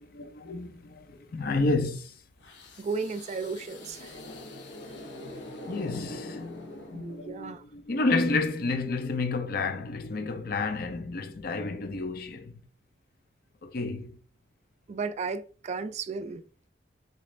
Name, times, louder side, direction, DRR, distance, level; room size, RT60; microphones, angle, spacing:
voice 1, 0.0-2.1 5.7-12.5 13.6-14.2, left 3 dB, 55° left, 0.6 m, -30 dB
sound 1, 2.4-7.5, left 1 dB, 80° left, 0.8 m, -43 dB
voice 2, 2.8-4.2 6.9-7.6 14.9-16.4, right 4 dB, 40° right, 0.3 m, -34 dB
4.0 x 2.5 x 3.1 m
head